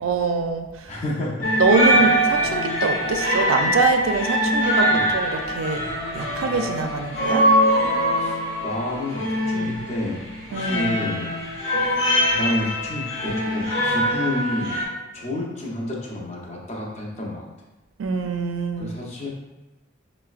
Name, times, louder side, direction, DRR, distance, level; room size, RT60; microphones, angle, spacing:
voice 1, 0.0-0.9 1.6-5.8 6.1-7.5 10.5-11.0 18.0-19.0, right 4 dB, 90° right, 5 dB, 0.4 m, -24 dB
voice 2, 0.9-1.5 4.9-5.1 8.2-10.2 10.5-11.3 11.7-12.1 12.4-14.8 15.1-17.5 18.8-19.3, left 1 dB, 35° left, -3 dB, 0.7 m, -29 dB
sound 1, 1.4-14.8, equal, 70° left, 1.0 m, -23 dB
5.5 x 2.1 x 2.4 m, 1.1 s
head